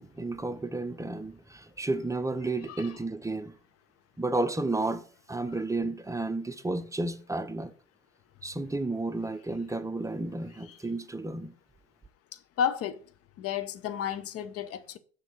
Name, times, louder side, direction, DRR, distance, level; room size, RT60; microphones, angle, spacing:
voice 1, 0.0-3.5 4.2-5.0 5.3-7.7 8.4-11.5, right 2 dB, 10° right, 0.7 m, -32 dB
voice 2, 12.3-13.0 13.4-15.0, left 8 dB, 50° left, 0.8 m, -32 dB
6.2 x 3.4 x 6.0 m
hypercardioid pair, 65°, 31 cm